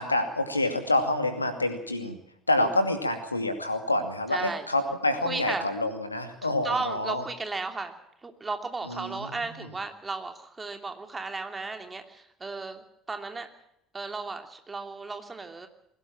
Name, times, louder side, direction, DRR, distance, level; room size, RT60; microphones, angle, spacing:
voice 1, 0.0-2.2 2.5-7.2 8.9-9.1, left 1 dB, 85° left, 8 dB, 2.4 m, -27 dB
voice 2, 4.3-4.7 5.2-5.7 6.6-7.9 8.2-13.5 13.9-15.7, right 3 dB, 20° right, 5 dB, 2.9 m, -35 dB
21.5 x 17.5 x 7.4 m, 0.77 s
figure-of-eight pair, 60°, 0 cm